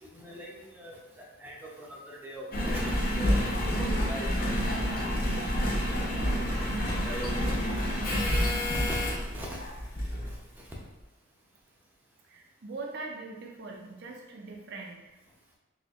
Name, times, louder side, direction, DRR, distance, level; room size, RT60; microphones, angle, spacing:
voice 1, 0.0-1.0 1.4-5.1 5.3-5.4 6.1-6.4 7.0-7.7 8.9-9.0 9.3-9.7, equal, 10° right, -4 dB, 0.6 m, -41 dB
Engine, 2.5-10.4 11.0-11.1, equal, 45° left, 0.6 m, -28 dB
sound 1, 6.5-8.9, right 1 dB, 75° right, 1.0 m, -47 dB
voice 2, 12.3-15.2, right 3 dB, 55° right, 0 dB, 0.4 m, -42 dB
4.1 x 2.8 x 2.4 m, 1.1 s
head